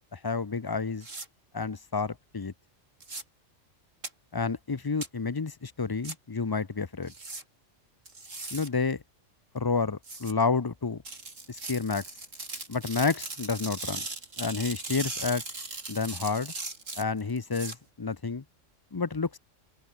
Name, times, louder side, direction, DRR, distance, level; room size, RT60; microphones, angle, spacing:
voice 1, 0.1-1.1 1.5-2.5 4.3-7.1 8.5-9.0 9.5-11.0 11.5-12.0 12.7-14.0 14.4-15.4 15.9-16.5 17.0-18.4 18.9-19.4, left 4 dB, 25° left, 0.5 m, -30 dB
sound 1, 1.0-1.3 3.0-3.2 4.0-4.1 5.0-5.1 6.0-6.1 7.1-7.4 8.1-8.7 10.0-10.3 11.0-17.7, right 3 dB, 80° right, 4.2 m, -38 dB
omnidirectional pair, 1.3 m